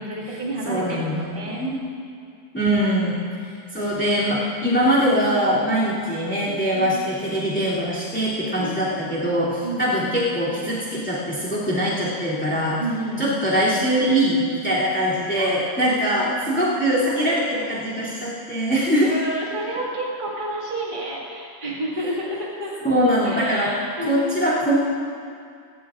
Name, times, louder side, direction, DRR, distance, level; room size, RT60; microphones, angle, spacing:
voice 1, 0.0-1.6 5.7-5.8 6.7-7.0 8.6-8.9 9.6-9.9 12.8-13.4 15.3-16.2 17.2-18.1 19.0-22.7 23.2-24.5, right 1 dB, 30° right, -4 dB, 2.0 m, -30 dB
voice 2, 0.7-1.8 2.5-3.2 3.7-12.8 13.2-19.2 22.8-23.7 24.0-24.8, equal, 5° left, -9 dB, 2.7 m, -22 dB
18.5 x 17.0 x 2.5 m, 2.3 s
omnidirectional pair, 1.8 m